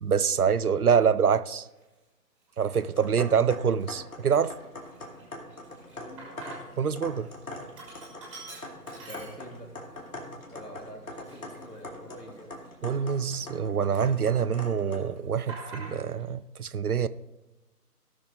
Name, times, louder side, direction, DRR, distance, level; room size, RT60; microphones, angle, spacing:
voice 1, 0.0-1.7 2.6-4.5 6.8-7.3 12.8-17.1, right 7 dB, 70° right, 0.7 m, -25 dB
Sink (filling or washing), 1.7-1.8 2.5-3.0 3.4-3.5 3.8-6.9 7.2-9.8 10.2-10.3 11.0-13.6 13.9-14.7 14.9-16.3, right 3 dB, 5° right, 1.3 m, -47 dB
sound 1, 2.7-15.2, left 1 dB, 60° left, 2.5 m, -43 dB
voice 2, 6.0-6.5 8.9-9.8 10.5-12.6, equal, 85° left, 3.4 m, -45 dB
17.0 x 6.3 x 3.8 m
figure-of-eight pair, 150°, 47 cm